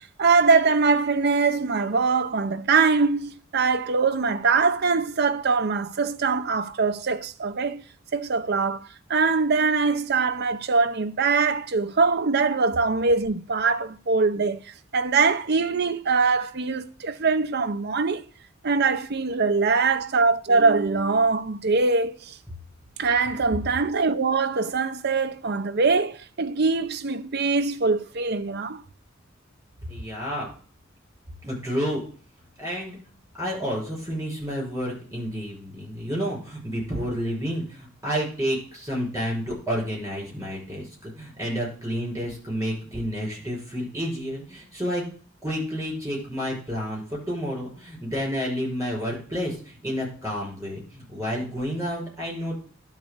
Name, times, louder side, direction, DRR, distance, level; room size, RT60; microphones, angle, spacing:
voice 1, 0.2-7.8 8.1-14.6 14.9-18.3 18.6-22.4 23.0-28.8, right 4 dB, 55° right, 0.7 m, -23 dB
voice 2, 29.9-30.5 31.4-32.0 32.6-33.0 33.4-45.0 45.4-52.5, equal, 15° right, 6.1 m, -30 dB
11.5 x 4.1 x 6.6 m
head